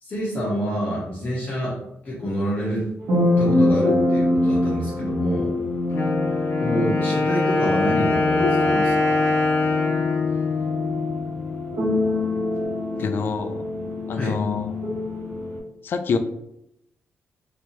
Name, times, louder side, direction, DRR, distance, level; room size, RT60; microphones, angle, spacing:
voice 1, 0.0-2.9 3.4-5.6 6.6-9.2 14.1-14.4, equal, 35° left, -7 dB, 0.8 m, -27 dB
sound 1, 3.0-15.6, left 1 dB, 85° right, 1.4 m, -25 dB
Wind instrument woodwind instrument, 5.9-11.6, left 3 dB, 80° left, 1.1 m, -23 dB
voice 2, 13.0-13.6 14.1-14.7 15.8-16.2, left 5 dB, 50° left, 8 dB, 0.3 m, -26 dB
3.2 x 2.7 x 2.9 m, 0.78 s
wide cardioid pair, 180°, 5 cm